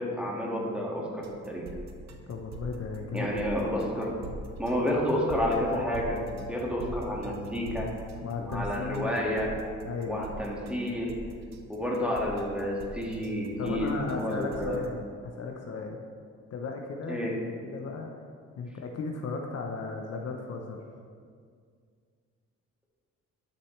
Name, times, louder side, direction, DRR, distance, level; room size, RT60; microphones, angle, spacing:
voice 1, 0.0-1.7 3.1-4.2 4.6-7.9 8.4-9.5 10.1-11.2 11.7-14.8 17.1-17.4, left 1 dB, 5° right, -3 dB, 1.8 m, -30 dB
sound 1, 1.2-14.9, right 2 dB, 65° right, 0.9 m, -42 dB
voice 2, 2.3-3.3 8.2-9.2 9.8-10.4 13.6-16.0 16.5-17.2 17.6-18.1 18.6-20.8, left 4 dB, 55° left, 2 dB, 0.8 m, -35 dB
11.5 x 6.1 x 3.3 m, 2.1 s
cardioid pair, 90°, 30 cm